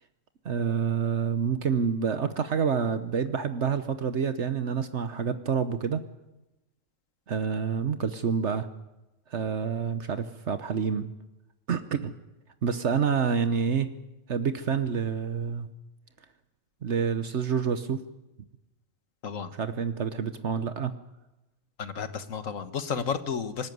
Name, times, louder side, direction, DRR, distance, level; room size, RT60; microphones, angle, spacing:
voice 1, 0.4-6.0 7.3-8.7 9.3-11.1 11.7-12.1 12.6-14.0 14.3-15.7 16.8-18.0 19.5-20.9, right 6 dB, 65° right, 10 dB, 1.2 m, -28 dB
voice 2, 21.8-23.7, left 6 dB, 85° left, 11 dB, 1.7 m, -32 dB
25.0 x 14.0 x 9.4 m, 0.99 s
omnidirectional pair, 1.3 m